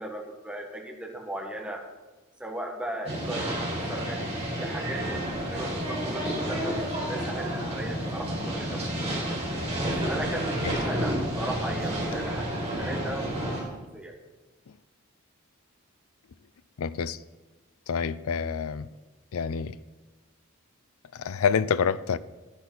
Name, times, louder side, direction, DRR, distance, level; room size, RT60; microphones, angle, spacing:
voice 1, 0.0-1.8 2.4-3.6 3.9-8.9 9.2-9.4 9.8-14.1, right 1 dB, 5° right, 1.6 m, -37 dB
sound 1, 3.0-13.6, equal, 30° right, 4.2 m, -30 dB
voice 2, 16.8-17.2 17.9-18.9 19.3-19.8 21.1-22.2, left 6 dB, 75° left, 0.4 m, -27 dB
11.0 x 10.5 x 4.1 m
head